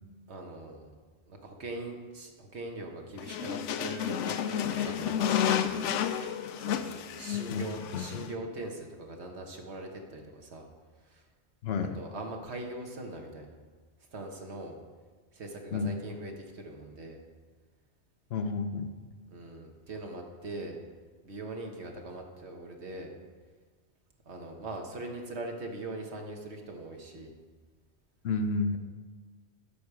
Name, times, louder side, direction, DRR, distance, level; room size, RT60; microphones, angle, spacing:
voice 1, 0.3-0.9 1.3-5.8 6.6-10.7 11.0-11.2 11.9-13.6 14.1-14.8 15.3-17.2 19.3-20.8 21.2-23.1 24.2-27.4, right 2 dB, 70° right, 2 dB, 1.5 m, -41 dB
sound 1, 3.2-8.3, left 9 dB, 90° left, 0.9 m, -31 dB
voice 2, 7.9-8.3 11.6-12.0 15.7-16.0 18.3-18.9 28.2-28.8, left 4 dB, 65° left, 8 dB, 0.8 m, -31 dB
11.0 x 6.8 x 4.8 m, 1.5 s
omnidirectional pair, 1.2 m